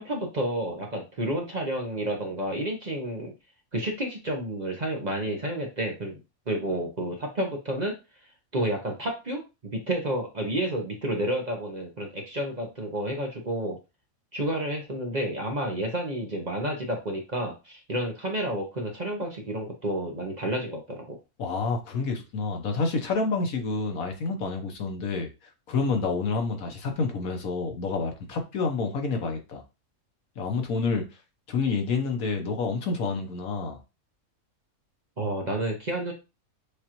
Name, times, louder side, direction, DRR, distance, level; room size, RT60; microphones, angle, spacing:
voice 1, 0.0-3.3 3.7-6.2 6.5-7.9 8.5-13.8 14.3-21.2 35.2-36.1, right 1 dB, 35° right, 0.8 m, -30 dB
voice 2, 21.4-25.3 25.7-29.6 30.4-31.0 31.5-33.8, left 4 dB, 75° left, 1.4 m, -28 dB
6.6 x 2.5 x 3.0 m
omnidirectional pair, 1.5 m